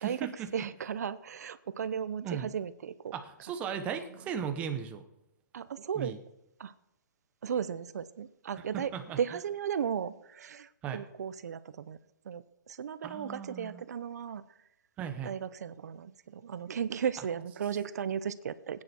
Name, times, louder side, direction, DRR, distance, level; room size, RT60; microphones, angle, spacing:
voice 1, 0.0-0.5 2.2-2.5 3.1-5.0 5.9-6.2 8.6-9.2 10.8-11.0 13.0-13.8 15.0-15.3, right 8 dB, 15° right, 7 dB, 0.9 m, -37 dB
voice 2, 0.5-3.2 5.5-6.1 6.6-6.7 7.4-12.0 12.3-14.4 15.2-18.8, right 8 dB, 55° right, 16 dB, 0.8 m, -35 dB
18.5 x 9.8 x 4.4 m, 0.88 s
hypercardioid pair, 170°, 10 cm